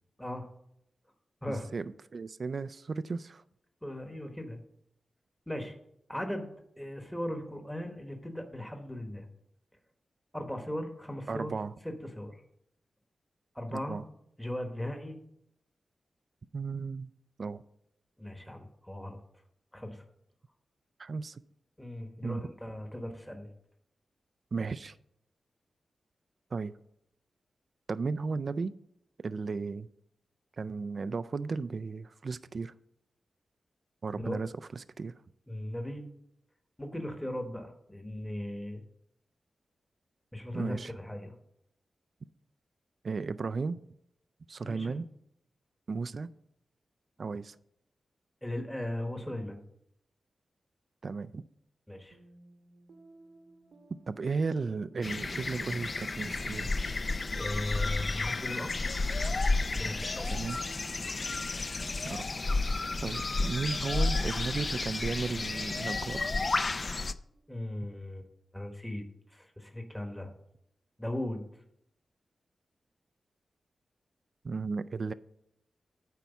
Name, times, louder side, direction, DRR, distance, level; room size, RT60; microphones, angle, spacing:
voice 1, 1.5-3.4 11.3-11.7 13.7-14.0 16.5-17.1 17.4-17.6 21.0-21.4 22.2-22.4 24.5-25.0 26.5-26.7 27.9-28.7 29.2-29.9 30.6-32.7 34.0-35.2 40.5-40.9 43.0-43.8 44.5-45.1 45.9-46.3 47.2-47.6 51.0-51.4 54.1-56.7 60.3-60.6 62.0-62.3 63.0-66.3 74.4-75.1, right 4 dB, 55° right, 13 dB, 0.3 m, -35 dB
voice 2, 3.8-4.6 5.5-5.8 6.1-6.5 6.8-9.2 10.3-11.5 11.8-12.4 13.5-14.0 14.4-15.2 18.2-19.2 19.7-20.0 21.8-23.5 34.1-34.4 35.5-36.1 36.8-38.8 40.3-41.3 44.6-45.0 48.4-49.6 51.9-52.2 57.4-58.9 59.7-60.3 67.5-68.3 68.5-69.0 69.3-70.3 71.0-71.4, left 1 dB, 5° left, 4 dB, 1.1 m, -38 dB
sound 1, 52.1-67.7, right 2 dB, 80° right, 1.1 m, -59 dB
sound 2, 55.0-67.1, left 3 dB, 40° left, 0.4 m, -32 dB
9.3 x 4.6 x 7.0 m, 0.76 s
wide cardioid pair, 90°, 0 cm